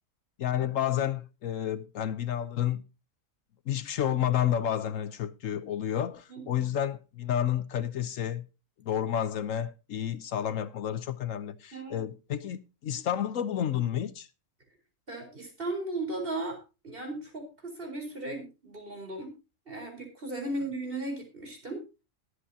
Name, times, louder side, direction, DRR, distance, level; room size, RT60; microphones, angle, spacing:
voice 1, 0.4-2.8 3.7-8.4 8.8-14.3, left 10 dB, 70° left, 1.1 m, -30 dB
voice 2, 15.1-19.3 19.7-21.8, right 2 dB, 40° right, 4.4 m, -36 dB
21.0 x 8.3 x 2.8 m
omnidirectional pair, 1.4 m